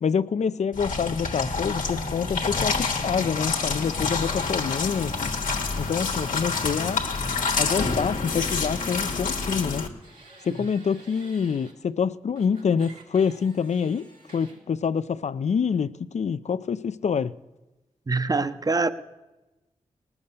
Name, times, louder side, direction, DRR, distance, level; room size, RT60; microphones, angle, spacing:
voice 1, 0.0-5.3 5.8-7.0 7.6-9.9 10.4-14.1 14.3-17.3, left 6 dB, 55° left, 0.5 m, -26 dB
sound 1, 0.7-9.9, left 4 dB, 80° left, 1.4 m, -27 dB
sound 2, 5.7-9.4 9.7-11.7 12.4-14.6, right 3 dB, 85° right, 2.5 m, -51 dB
voice 2, 18.1-18.9, right 3 dB, 25° right, 0.7 m, -24 dB
19.0 x 7.1 x 6.7 m
cardioid pair, 45°, 13 cm